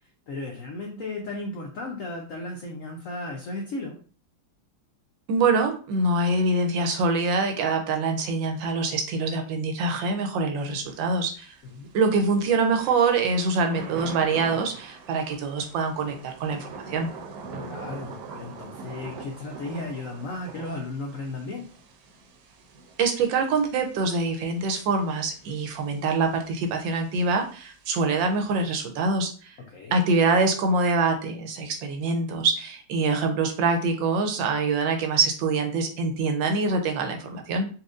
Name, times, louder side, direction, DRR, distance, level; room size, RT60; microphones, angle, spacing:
voice 1, 0.3-4.0 11.6-11.9 17.6-21.7 29.6-30.0, left 2 dB, 75° left, 1 dB, 0.7 m, -35 dB
voice 2, 5.3-11.5 11.9-17.1 23.0-29.5 29.9-37.7, right 3 dB, 90° right, 5 dB, 1.4 m, -25 dB
Thunder / Rain, 10.6-28.8, right 3 dB, 70° right, 1.1 m, -44 dB
4.1 x 2.6 x 2.5 m, 0.40 s
omnidirectional pair, 2.0 m